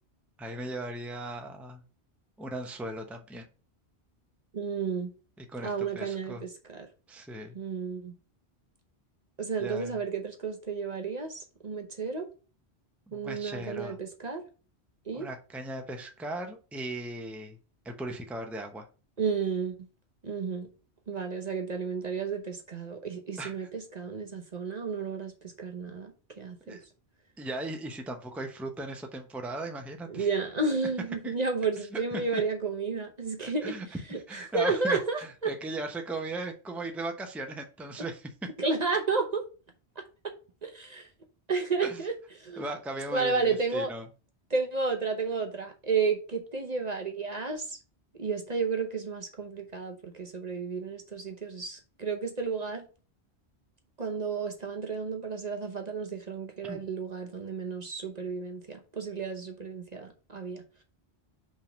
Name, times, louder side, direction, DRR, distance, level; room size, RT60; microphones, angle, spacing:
voice 1, 0.4-1.8 2.4-3.5 5.4-6.4 7.1-7.6 9.6-10.0 13.1-14.0 15.1-17.6 17.8-18.9 23.4-23.7 26.7-26.8 27.4-30.3 31.2-31.3 31.8-32.4 33.4-34.0 34.3-38.3 41.8-42.0 42.6-44.1 56.6-56.8, right 2 dB, ahead, 0.8 m, -38 dB
voice 2, 4.5-5.1 5.6-6.9 7.5-8.1 9.4-12.3 13.1-14.4 15.1-15.3 19.2-19.7 20.2-20.7 21.1-26.1 26.4-26.8 30.1-33.8 34.1-35.5 38.6-39.4 40.2-40.3 40.6-41.1 41.5-42.6 43.1-43.9 44.5-47.8 48.2-52.8 54.0-60.6, right 4 dB, 40° right, 1.0 m, -32 dB
5.4 x 3.6 x 5.1 m
omnidirectional pair, 1.1 m